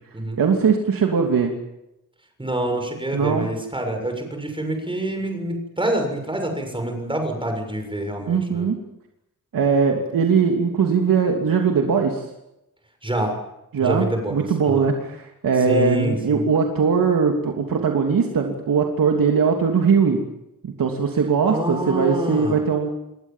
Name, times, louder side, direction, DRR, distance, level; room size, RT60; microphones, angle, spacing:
voice 1, 0.4-1.5 3.1-3.5 8.3-8.8 9.5-12.3 13.7-20.2 20.6-22.9, right 5 dB, 90° right, 2 dB, 3.0 m, -20 dB
voice 2, 2.4-8.7 13.0-13.4 13.8-14.9 15.7-16.5 21.5-22.6, right 1 dB, 15° right, 4 dB, 7.0 m, -26 dB
29.0 x 21.5 x 7.5 m, 0.87 s
wide cardioid pair, 145°, 33 cm